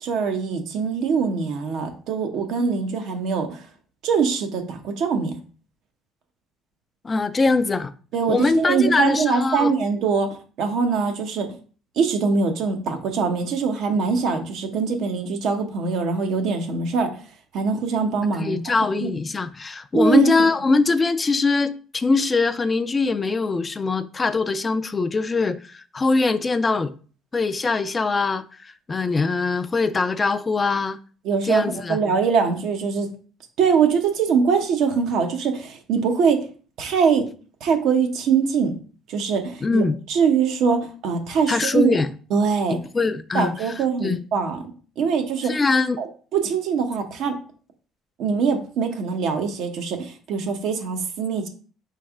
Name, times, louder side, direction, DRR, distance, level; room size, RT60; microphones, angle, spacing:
voice 1, 0.0-3.6 4.0-5.3 8.1-11.5 12.0-17.1 17.5-18.7 19.0-19.1 19.9-20.3 31.2-33.1 33.6-36.4 36.8-37.3 37.6-38.8 39.1-42.0 42.3-42.8 43.3-45.6 46.0-47.3 48.2-51.5, right 5 dB, 70° right, 0.8 m, -23 dB
voice 2, 7.0-7.9 8.3-9.7 18.3-26.9 27.3-31.0 31.4-32.0 39.6-40.0 41.5-42.1 42.9-43.5 44.0-44.2 45.4-46.0, left 3 dB, 25° left, 0.3 m, -22 dB
4.2 x 3.2 x 3.5 m
supercardioid pair, 90°, 0 cm